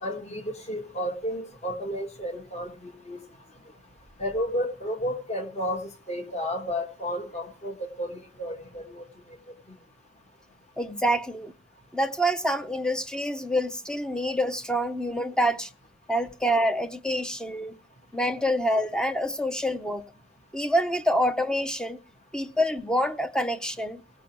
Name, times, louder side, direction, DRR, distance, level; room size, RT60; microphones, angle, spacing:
voice 1, 0.0-3.2 4.2-9.0, equal, 30° left, 1.6 m, -32 dB
voice 2, 10.8-11.5 11.9-15.7 16.1-17.7 18.1-20.0 20.5-22.0 22.3-24.0, equal, 5° left, 0.6 m, -26 dB
18.0 x 6.0 x 4.6 m
head